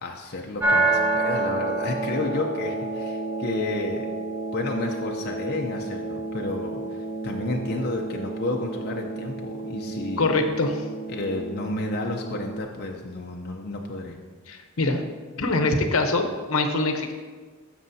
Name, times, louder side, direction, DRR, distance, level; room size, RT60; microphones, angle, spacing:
voice 1, 0.0-4.1 4.5-10.4 11.1-14.2, left 2 dB, 45° left, 1 dB, 0.6 m, -31 dB
sound 1, 0.6-12.6, right 2 dB, 10° right, 1.4 m, -29 dB
voice 2, 10.2-10.8 14.5-15.0 15.4-17.1, left 2 dB, 75° left, 5 dB, 0.8 m, -23 dB
13.0 x 6.1 x 2.7 m, 1.5 s
head